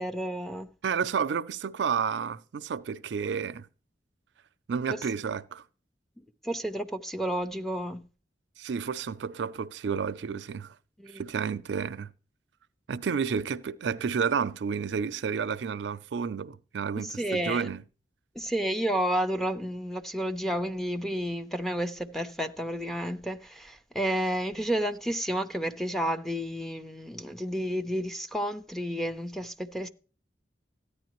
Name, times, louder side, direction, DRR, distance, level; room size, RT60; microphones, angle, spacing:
voice 1, 0.0-0.7 6.4-8.0 11.0-11.2 17.0-17.7 18.4-29.9, equal, ahead, 0.6 m, -31 dB
voice 2, 0.8-3.7 4.7-5.6 8.6-10.7 11.1-12.1 12.9-17.8, right 6 dB, 75° right, 0.4 m, -31 dB
14.0 x 9.7 x 3.0 m
head